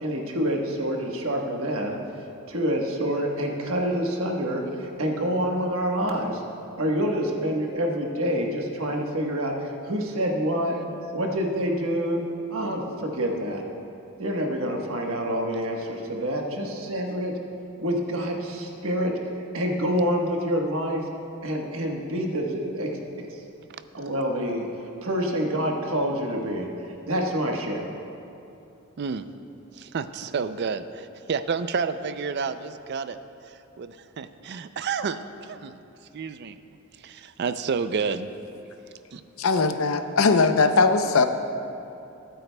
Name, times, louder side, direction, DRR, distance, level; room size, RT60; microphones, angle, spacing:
voice 1, 0.0-2.0 2.5-6.4 6.8-10.8 11.1-12.2 12.5-13.6 14.2-17.3 17.8-19.1 19.5-21.0 21.4-23.4 23.9-24.7 25.0-26.7 27.1-27.9, equal, 75° right, 1 dB, 1.3 m, -27 dB
voice 2, 29.7-33.2 33.5-35.8 36.1-36.6 37.0-38.3 39.1-39.2, right 5 dB, 55° right, 11 dB, 0.4 m, -30 dB
voice 3, 39.4-41.3, left 4 dB, 75° left, 8 dB, 0.6 m, -20 dB
21.5 x 9.0 x 2.2 m, 2.7 s
head